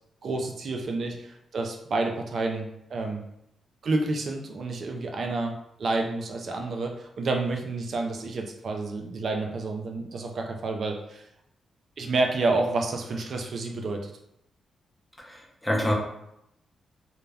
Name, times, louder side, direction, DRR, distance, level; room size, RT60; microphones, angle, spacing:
voice 1, 0.2-3.2 3.8-11.2 12.0-14.1, right 3 dB, 65° right, 3 dB, 0.4 m, -29 dB
voice 2, 15.2-15.9, equal, 15° left, -2 dB, 0.7 m, -27 dB
2.1 x 2.1 x 3.3 m, 0.80 s
supercardioid pair, 45°, 0 cm